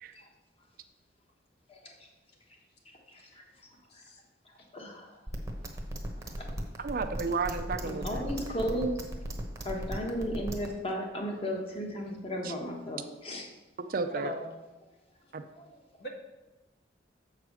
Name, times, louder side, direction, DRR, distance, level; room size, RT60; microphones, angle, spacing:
voice 1, 2.8-3.4 4.7-5.2 6.3-6.5 7.8-9.0 9.6-13.5 15.6-15.7, equal, 30° left, 1 dB, 1.3 m, -35 dB
sound 1, 5.3-10.7, right 1 dB, 15° right, 0.9 m, -36 dB
voice 2, 6.8-8.3 12.4-12.5 13.9-14.3 15.3-15.4, right 4 dB, 50° right, 8 dB, 0.5 m, -32 dB
voice 3, 14.1-14.5 16.0-16.1, equal, 60° left, 1 dB, 1.5 m, -39 dB
7.1 x 4.8 x 6.2 m, 1.1 s
head